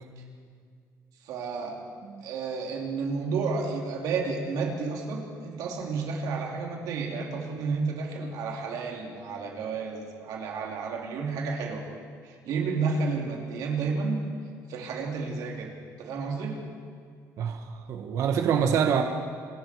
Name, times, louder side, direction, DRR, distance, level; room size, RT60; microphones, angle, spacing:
voice 1, 1.2-1.7 2.2-11.8 12.2-14.2 14.7-16.6, right 4 dB, 85° right, 0 dB, 3.7 m, -31 dB
voice 2, 17.4-19.0, right 7 dB, 55° right, 5 dB, 1.3 m, -26 dB
28.0 x 21.0 x 4.8 m, 2.2 s
cardioid pair, 175°, 6 cm